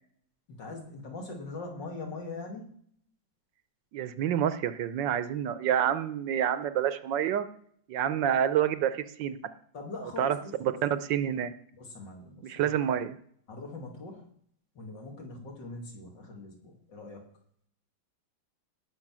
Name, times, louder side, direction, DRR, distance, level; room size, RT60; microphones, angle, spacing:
voice 1, 0.5-2.7 9.7-10.5 11.8-12.8 13.5-14.3 14.7-17.2, left 3 dB, 70° left, 1 dB, 3.4 m, -42 dB
voice 2, 3.9-7.4 7.9-9.4 10.2-11.5 12.4-13.2, right 9 dB, 75° right, 13 dB, 1.4 m, -28 dB
18.5 x 6.2 x 6.2 m, 0.63 s
omnidirectional pair, 2.0 m